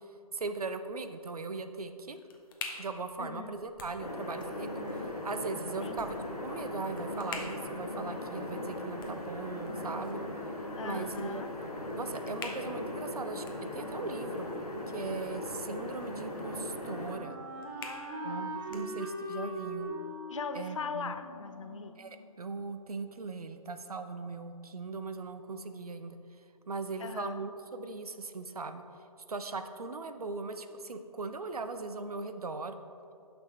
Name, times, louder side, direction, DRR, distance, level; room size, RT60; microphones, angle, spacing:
voice 1, 0.3-2.2 2.8-4.7 5.2-6.2 6.4-10.2 10.8-11.4 12.0-13.4 13.7-14.5 14.9-17.4 18.2-19.9 20.5-21.1 22.0-26.2 26.7-28.8 29.3-32.8, right 3 dB, 75° right, 9 dB, 0.6 m, -39 dB
sound 1, 1.7-19.4, left 4 dB, 35° left, 0.9 m, -50 dB
voice 2, 3.2-3.6 5.8-6.0 10.8-11.5 17.8-19.0 20.3-21.9 27.0-27.4, left 5 dB, 55° left, 9 dB, 0.5 m, -41 dB
sound 2, 4.0-17.2, left 1 dB, 80° left, 1.5 m, -39 dB
Wind instrument woodwind instrument, 15.9-22.7, right 1 dB, 15° right, 1.3 m, -42 dB
9.7 x 6.1 x 3.2 m, 2.7 s
figure-of-eight pair, 135°, 19 cm